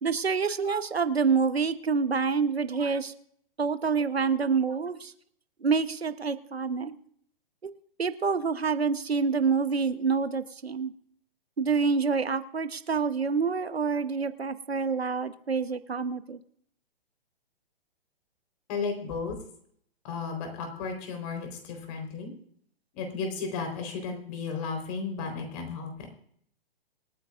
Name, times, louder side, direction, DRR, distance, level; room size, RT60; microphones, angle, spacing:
voice 1, 0.0-3.1 3.6-5.1 5.6-7.0 7.6-7.7 8.0-10.9 11.6-16.4, right 5 dB, 85° right, 12 dB, 1.1 m, -27 dB
voice 2, 18.7-19.4 20.0-22.3 22.9-26.1, left 5 dB, 40° left, 4 dB, 4.1 m, -34 dB
27.0 x 9.6 x 2.5 m, 0.64 s
figure-of-eight pair, 120°, 30 cm